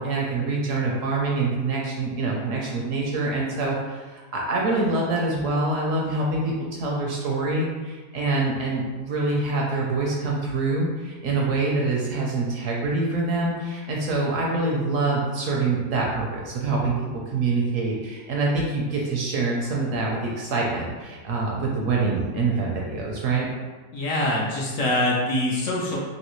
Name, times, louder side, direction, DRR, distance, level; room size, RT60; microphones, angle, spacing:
voice 1, 0.0-16.9 17.3-23.5, right 3 dB, 70° right, -2 dB, 0.8 m, -25 dB
voice 2, 23.9-26.0, left 1 dB, 65° left, -3 dB, 0.9 m, -24 dB
3.2 x 2.7 x 3.0 m, 1.4 s
omnidirectional pair, 1.7 m